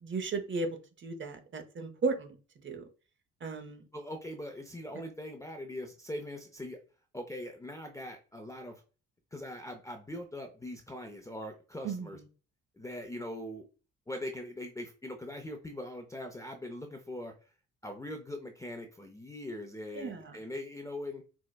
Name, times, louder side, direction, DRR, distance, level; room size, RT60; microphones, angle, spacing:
voice 1, 0.0-2.4 2.6-2.8 3.4-3.8 11.8-12.2 19.9-20.4, right 3 dB, 40° right, 0.7 m, -35 dB
voice 2, 3.9-6.8 7.1-8.8 9.3-12.2 12.8-13.7 14.1-17.3 17.8-21.2, left 1 dB, 10° left, 0.4 m, -41 dB
4.4 x 2.1 x 2.2 m
cardioid pair, 90°, 30 cm